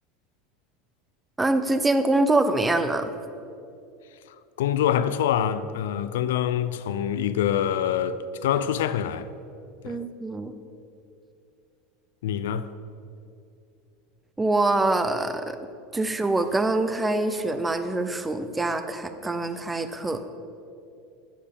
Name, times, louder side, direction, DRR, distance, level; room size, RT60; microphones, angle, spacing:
voice 1, 1.4-3.1 9.8-10.5 14.4-15.6 15.9-20.2, right 2 dB, 15° right, 0.6 m, -24 dB
voice 2, 4.3-9.3 9.8-10.0 12.2-12.7, left 9 dB, 85° left, 0.4 m, -25 dB
8.6 x 5.5 x 7.0 m
supercardioid pair, 105°, 0 cm